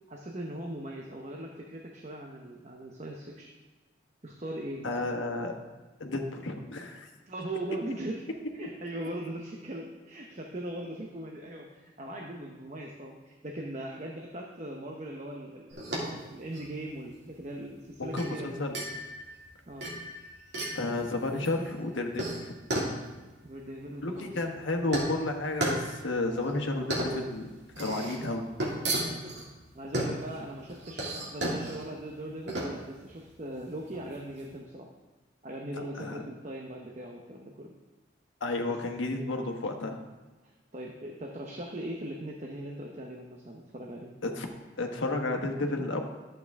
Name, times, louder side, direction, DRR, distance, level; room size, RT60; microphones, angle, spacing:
voice 1, 0.1-3.5 4.2-5.1 7.3-8.2 8.5-18.6 19.7-19.9 21.3-21.7 23.4-24.4 28.9-29.2 29.7-34.9 35.4-37.7 38.7-38.8 40.4-44.1, right 1 dB, 35° right, 0 dB, 0.8 m, -40 dB
voice 2, 4.8-5.5 6.0-7.1 18.0-18.7 20.7-22.5 24.0-27.5 27.8-28.5 36.0-36.3 38.4-40.0 44.2-44.5 44.8-46.0, left 2 dB, 85° left, 3 dB, 1.2 m, -32 dB
sound 1, 15.7-34.5, right 1 dB, 65° right, 2.4 m, -35 dB
11.5 x 7.9 x 3.6 m, 1.2 s
head